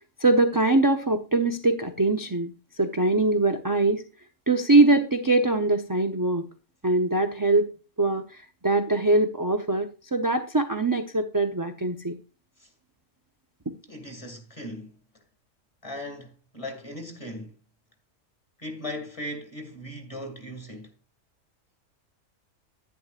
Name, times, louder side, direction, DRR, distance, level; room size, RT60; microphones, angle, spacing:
voice 1, 0.2-4.0 4.5-6.5 6.8-7.7 8.0-12.2 13.7-13.8, right 2 dB, 20° right, 0.6 m, -23 dB
voice 2, 13.9-15.2 15.8-17.6 18.6-20.9, left 1 dB, 25° left, 2.3 m, -38 dB
11.0 x 10.5 x 2.4 m
omnidirectional pair, 1.3 m